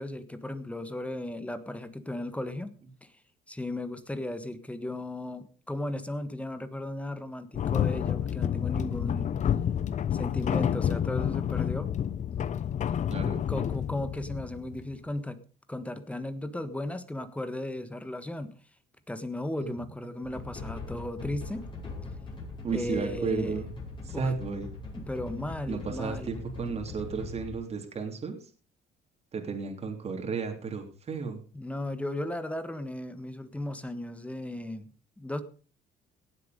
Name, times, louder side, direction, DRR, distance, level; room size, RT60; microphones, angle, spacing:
voice 1, 0.0-2.7 3.0-3.1 3.5-9.3 10.1-11.9 13.5-15.4 15.7-18.5 19.1-21.7 22.7-23.6 24.1-24.3 24.9-26.3 31.5-34.9 35.2-35.4, left 1 dB, 10° left, 12 dB, 1.5 m, -36 dB
sound 1, 7.5-15.0, left 9 dB, 45° left, 0.8 m, -29 dB
sound 2, 20.2-27.6, left 3 dB, 30° left, 6.3 m, -41 dB
voice 2, 22.6-23.7 24.0-24.7 25.7-28.4 29.3-31.4, right 5 dB, 40° right, 4 dB, 3.3 m, -33 dB
17.5 x 8.1 x 5.2 m, 0.39 s
cardioid pair, 110°, 17 cm